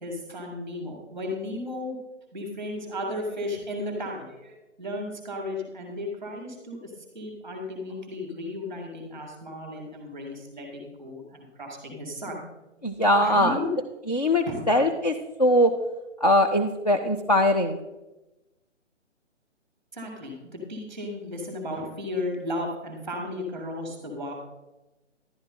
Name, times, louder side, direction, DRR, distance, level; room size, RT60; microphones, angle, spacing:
voice 1, 0.0-2.0 2.3-12.4 13.2-13.7 14.5-14.6 19.9-24.3, left 1 dB, ahead, 1 dB, 1.5 m, -34 dB
voice 2, 12.8-13.6 14.1-15.7 16.2-17.8, left 1 dB, 35° left, 4 dB, 0.5 m, -21 dB
11.5 x 9.7 x 3.7 m, 1.0 s
hypercardioid pair, 175°, 37 cm